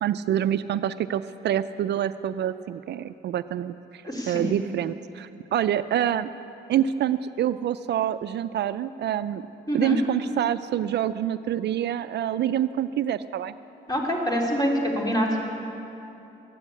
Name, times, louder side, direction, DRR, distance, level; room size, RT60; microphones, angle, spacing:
voice 1, 0.0-6.3 6.7-9.4 9.7-13.5, right 10 dB, 60° right, 13 dB, 0.4 m, -26 dB
voice 2, 4.0-4.6 9.7-10.0 13.9-15.3, equal, 20° left, -1 dB, 3.1 m, -25 dB
14.0 x 9.8 x 8.4 m, 2.9 s
cardioid pair, 90°, 20 cm